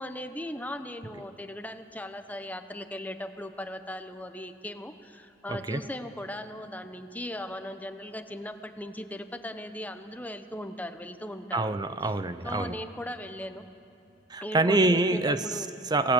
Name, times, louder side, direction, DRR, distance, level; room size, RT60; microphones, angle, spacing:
voice 1, 0.0-11.8 12.4-13.6 14.4-15.7, left 1 dB, 10° left, 8 dB, 0.9 m, -38 dB
voice 2, 5.5-5.8 11.5-12.8 14.3-15.5 15.8-16.1, right 2 dB, 25° right, 11 dB, 0.6 m, -25 dB
27.0 x 18.5 x 8.2 m, 2.6 s
head